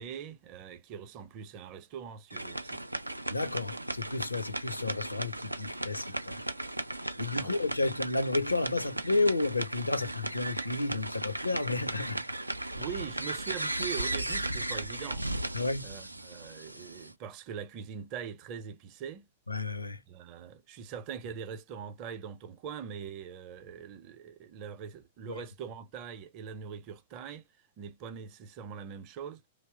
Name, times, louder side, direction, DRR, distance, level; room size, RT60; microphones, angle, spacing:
voice 1, 0.0-2.8 7.3-7.6 12.8-15.2 15.8-19.3 20.1-27.5 27.8-29.4, right 7 dB, 35° right, 0.6 m, -42 dB
sound 1, 2.3-17.1, right 1 dB, 85° right, 0.3 m, -36 dB
voice 2, 3.3-6.4 7.2-12.2 15.5-15.9 19.5-20.0 25.3-25.4, left 3 dB, 80° left, 0.5 m, -31 dB
2.9 x 2.0 x 3.3 m
figure-of-eight pair, 100°, 0 cm